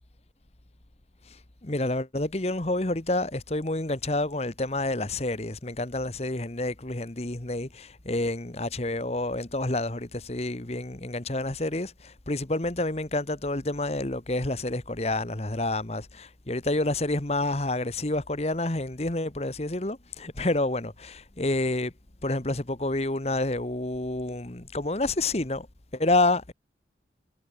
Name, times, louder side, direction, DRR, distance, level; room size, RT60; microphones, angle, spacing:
voice 1, 1.6-21.9 22.2-25.7 25.9-26.5, left 2 dB, 35° left, 1.3 m, -28 dB
head